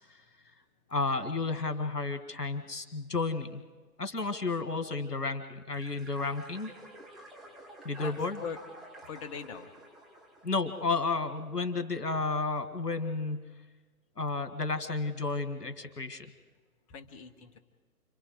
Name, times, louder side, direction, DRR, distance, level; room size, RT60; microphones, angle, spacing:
voice 1, 0.9-3.6 4.0-6.7 7.8-8.4 10.4-13.5 14.2-16.3, left 3 dB, 80° left, 8 dB, 2.2 m, -32 dB
sound 1, 5.7-11.4, right 1 dB, ahead, 0.8 m, -51 dB
voice 2, 7.9-8.6 9.1-9.7 10.2-10.3 16.9-17.6, left 6 dB, 20° left, 9 dB, 1.2 m, -41 dB
30.0 x 24.5 x 5.0 m, 1.3 s
figure-of-eight pair, 135°, 47 cm